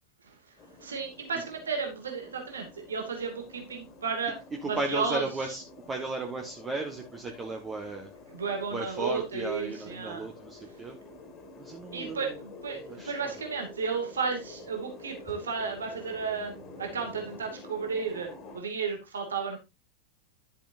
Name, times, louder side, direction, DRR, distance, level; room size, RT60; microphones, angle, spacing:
montanatrain-cricketsambience, 0.6-18.6, left 2 dB, 30° left, 2.4 m, -48 dB
voice 1, 0.8-4.4 4.6-5.5 8.3-10.3 11.9-19.6, right 5 dB, 70° right, 3 dB, 2.6 m, -33 dB
voice 2, 4.6-5.6 5.9-8.1 8.7-11.0 11.6-12.2 12.9-13.3, right 3 dB, 20° right, 1 dB, 1.5 m, -35 dB
12.0 x 7.2 x 2.7 m, 0.25 s
figure-of-eight pair, 90°, 0 cm